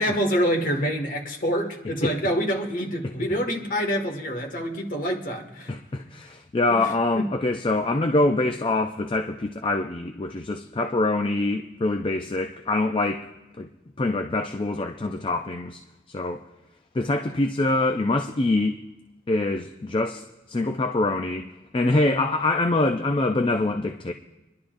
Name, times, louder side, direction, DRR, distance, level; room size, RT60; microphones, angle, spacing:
voice 1, 0.0-5.7 6.8-7.3, equal, 45° left, 1 dB, 1.9 m, -26 dB
voice 2, 5.7-13.3 13.6-13.7 14.0-15.8 16.1-16.4 16.9-18.8 19.3-21.5 21.7-24.1, left 2 dB, 25° left, 5 dB, 0.4 m, -24 dB
26.0 x 11.5 x 2.6 m, 1.1 s
head